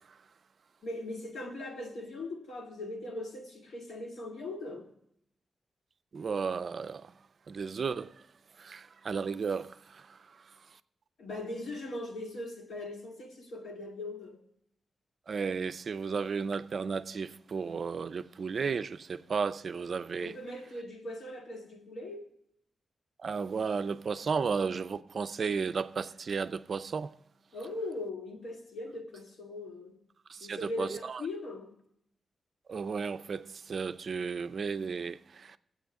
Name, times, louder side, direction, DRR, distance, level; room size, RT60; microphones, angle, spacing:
voice 1, 0.8-4.9 11.2-14.4 20.2-22.2 27.5-30.0 30.4-31.7, left 2 dB, 85° left, 2.0 m, -40 dB
voice 2, 6.1-7.1 7.5-8.1 8.6-10.0 15.3-20.3 23.2-27.1 30.3-31.2 32.7-35.6, right 5 dB, 45° right, 0.4 m, -34 dB
18.0 x 8.0 x 3.5 m
wide cardioid pair, 155°, 0 cm